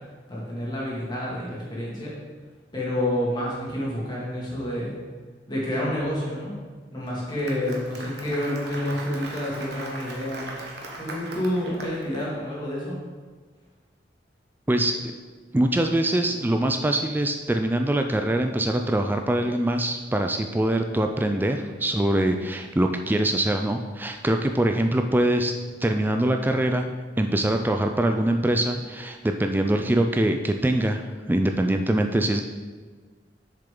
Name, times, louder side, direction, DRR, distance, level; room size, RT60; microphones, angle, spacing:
voice 1, 0.3-2.1 2.7-5.0 5.5-6.5 6.9-10.6 11.0-13.0, left 1 dB, 25° left, -6 dB, 2.2 m, -29 dB
Applause, 7.1-12.2, right 2 dB, 65° right, 1.2 m, -39 dB
voice 2, 14.7-15.1 15.5-25.5 25.8-26.8 27.2-31.0 31.3-32.4, right 1 dB, 10° right, 5 dB, 0.3 m, -23 dB
6.9 x 6.6 x 3.8 m, 1.5 s
head